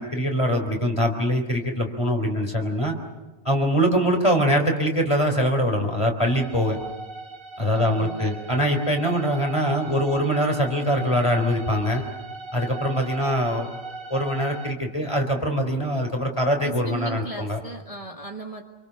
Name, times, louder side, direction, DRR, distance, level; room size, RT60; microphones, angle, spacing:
voice 1, 0.0-3.0 3.4-6.8 7.6-12.0 12.5-13.7 14.1-17.6, equal, 20° left, 4 dB, 3.9 m, -23 dB
sound 1, 6.2-14.7, right 3 dB, 90° right, 2.2 m, -38 dB
voice 2, 7.7-8.3 16.6-18.6, right 2 dB, 25° right, 2 dB, 1.6 m, -37 dB
28.0 x 24.5 x 6.9 m, 1.2 s
omnidirectional pair, 1.4 m